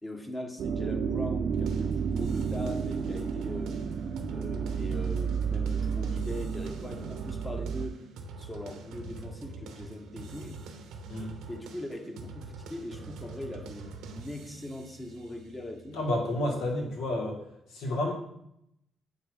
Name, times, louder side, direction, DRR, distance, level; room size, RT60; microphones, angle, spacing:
voice 1, 0.0-3.8 4.3-8.0 8.4-10.6 11.5-16.0 16.5-16.6, left 1 dB, 15° left, 4 dB, 0.9 m, -41 dB
sound 1, 0.6-7.9, right 6 dB, 55° right, 0.5 m, -31 dB
sound 2, 1.5-17.3, right 3 dB, 85° right, 0.8 m, -45 dB
voice 2, 15.9-17.4 17.7-18.1, left 1 dB, 90° left, 1 dB, 1.4 m, -30 dB
8.0 x 2.7 x 4.6 m, 0.76 s
cardioid pair, 90°, 0 cm